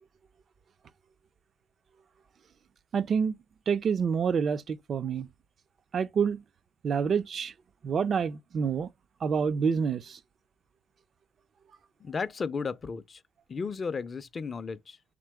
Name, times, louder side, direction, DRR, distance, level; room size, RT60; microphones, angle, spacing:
voice 1, 2.9-3.4 3.7-5.3 5.9-6.4 6.8-7.5 7.8-8.9 9.2-10.2, right 6 dB, 45° right, 0.3 m, -27 dB
voice 2, 12.0-13.2 13.5-15.0, left 5 dB, 30° left, 0.4 m, -34 dB
3.7 x 3.0 x 3.4 m
supercardioid pair, 95°, 0 cm